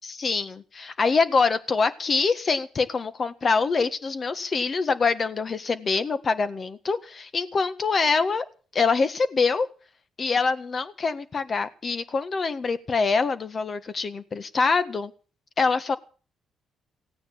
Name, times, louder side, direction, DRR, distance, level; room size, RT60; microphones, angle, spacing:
voice 1, 0.0-8.4 8.7-9.7 10.2-15.1 15.6-16.0, left 4 dB, 45° left, 11 dB, 1.6 m, -25 dB
16.5 x 9.4 x 7.5 m, 0.39 s
supercardioid pair, 70°, 0 cm